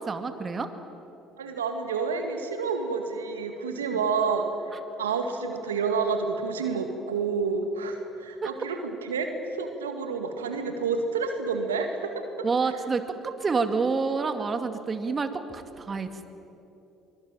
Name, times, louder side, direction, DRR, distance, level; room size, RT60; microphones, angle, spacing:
voice 1, 0.1-0.7 8.4-8.5 12.4-16.2, right 4 dB, 35° right, 8 dB, 2.3 m, -28 dB
voice 2, 1.4-4.5 5.0-12.3 12.6-12.7, right 5 dB, 85° right, 5 dB, 2.0 m, -29 dB
24.0 x 22.5 x 9.0 m, 3.0 s
hypercardioid pair, 55°, 0 cm